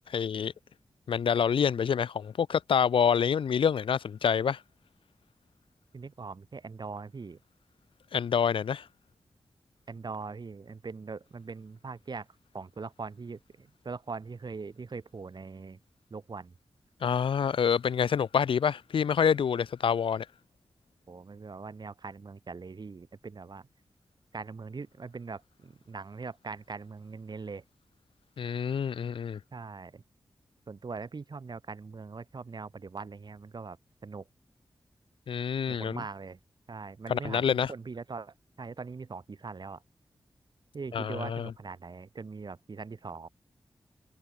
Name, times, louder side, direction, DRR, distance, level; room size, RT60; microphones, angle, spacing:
voice 1, 0.1-0.5 1.1-4.6 8.1-8.8 17.0-20.3 28.4-29.4 35.3-36.0 37.1-37.7 40.9-41.5, left 7 dB, 90° left, 0.9 m, -27 dB
voice 2, 5.9-7.4 9.9-12.3 12.5-15.8 16.1-16.5 21.1-23.7 24.3-27.6 29.5-30.0 30.7-33.8 34.0-34.2 35.7-36.4 36.7-39.8 40.7-43.3, right 4 dB, 55° right, 2.8 m, -41 dB
cardioid pair, 60°, 9 cm